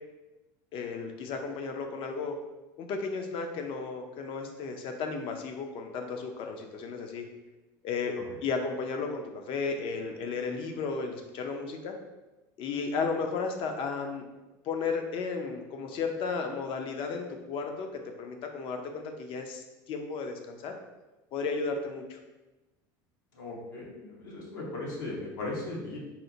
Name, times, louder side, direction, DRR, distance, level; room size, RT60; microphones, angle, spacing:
voice 1, 0.7-2.4 2.8-7.2 7.8-8.2 8.4-11.9 12.6-14.2 14.6-20.8 21.3-22.2, left 4 dB, 55° left, 4 dB, 0.5 m, -34 dB
voice 2, 23.3-26.0, left 2 dB, 85° left, -4 dB, 1.0 m, -37 dB
4.1 x 2.0 x 2.7 m, 1.1 s
supercardioid pair, 100°, 11 cm